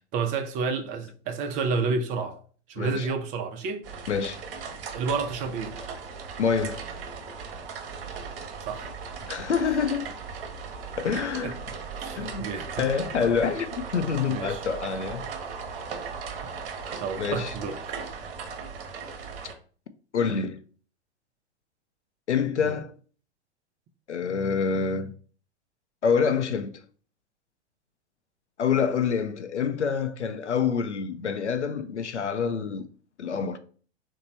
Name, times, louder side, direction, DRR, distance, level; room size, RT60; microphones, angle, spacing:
voice 1, 0.1-2.4 2.7-3.9 4.9-5.8 8.6-8.9 11.4-11.5 12.0-12.8 14.3-14.7 17.0-17.8 22.6-22.7, right 4 dB, 25° right, 0.4 m, -30 dB
voice 2, 2.8-3.1 4.1-4.4 6.4-6.8 9.3-10.1 11.0-11.5 12.2-12.4 12.8-15.2 17.2-17.5 20.1-20.6 22.3-22.9 24.1-25.1 26.0-26.8 28.6-32.8 33.2-33.6, left 6 dB, 90° left, 0.5 m, -26 dB
sound 1, 3.8-19.5, right 5 dB, 55° right, 0.8 m, -37 dB
3.0 x 2.2 x 4.0 m
figure-of-eight pair, 95°, 34 cm